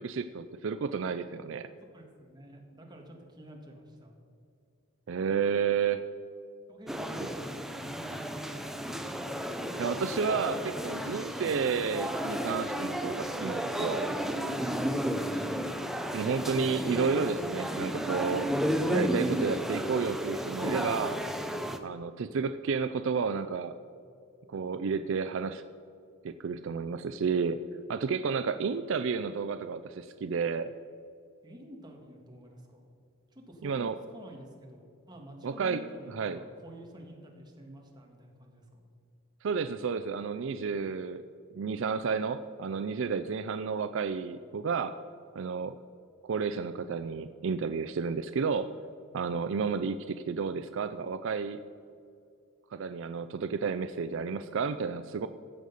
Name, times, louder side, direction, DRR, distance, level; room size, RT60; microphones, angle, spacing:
voice 1, 0.0-1.7 5.1-6.0 9.8-14.1 16.1-18.5 18.9-21.2 21.8-23.8 24.5-25.6 26.2-27.6 27.9-30.7 33.6-34.0 35.4-35.8 36.1-36.4 39.4-41.2 41.5-44.9 45.4-45.8 46.2-48.7 49.1-51.6 52.7-55.3, right 5 dB, 60° right, 10 dB, 0.4 m, -31 dB
voice 2, 1.9-4.1 6.7-8.9 31.4-32.9 33.3-38.9, equal, 20° right, 0 dB, 1.7 m, -49 dB
sound 1, 6.9-21.8, equal, ahead, 0.5 m, -33 dB
15.5 x 6.5 x 5.4 m, 2.4 s
head